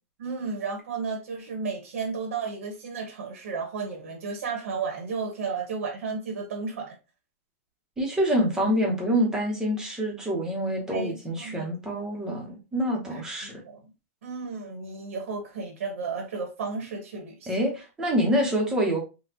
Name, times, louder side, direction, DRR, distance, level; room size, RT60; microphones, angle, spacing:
voice 1, 0.2-7.0 10.9-12.0 13.1-13.8 14.2-17.5, right 5 dB, 75° right, 1.1 m, -33 dB
voice 2, 8.0-13.6 17.5-19.0, equal, 10° right, 0.9 m, -26 dB
3.9 x 2.3 x 2.8 m
supercardioid pair, 160°, 8 cm